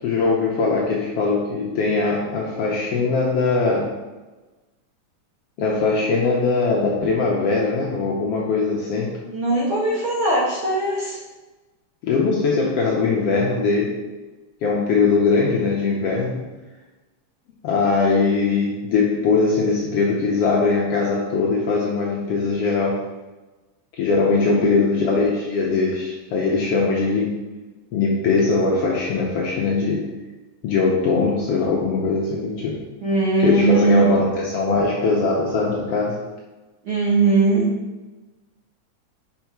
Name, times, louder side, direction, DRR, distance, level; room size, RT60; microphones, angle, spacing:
voice 1, 0.0-3.9 5.6-9.1 12.0-14.0 14.6-16.5 17.6-23.0 24.0-27.4 27.9-30.0 30.6-32.8 33.4-36.2, left 4 dB, 70° left, -3 dB, 1.5 m, -21 dB
voice 2, 9.3-11.2 24.3-24.7 33.0-34.1 36.9-37.7, right 3 dB, 55° right, -5 dB, 1.6 m, -19 dB
5.4 x 4.7 x 4.5 m, 1.2 s
omnidirectional pair, 3.4 m